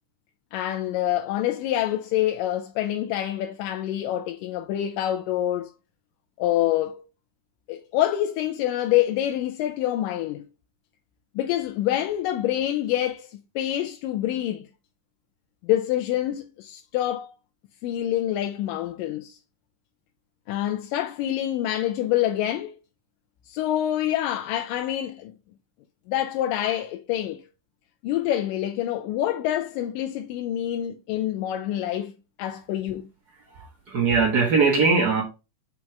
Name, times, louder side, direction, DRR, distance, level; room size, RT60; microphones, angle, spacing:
voice 1, 0.5-5.7 6.4-7.0 7.7-10.5 11.4-14.6 15.6-17.3 17.8-19.4 20.5-22.8 23.5-25.3 26.1-27.5 28.0-32.1 32.4-33.1, left 12 dB, 85° left, 2.2 m, -26 dB
voice 2, 33.5-35.2, right 4 dB, 80° right, 0.8 m, -21 dB
5.3 x 4.6 x 4.6 m
omnidirectional pair, 3.8 m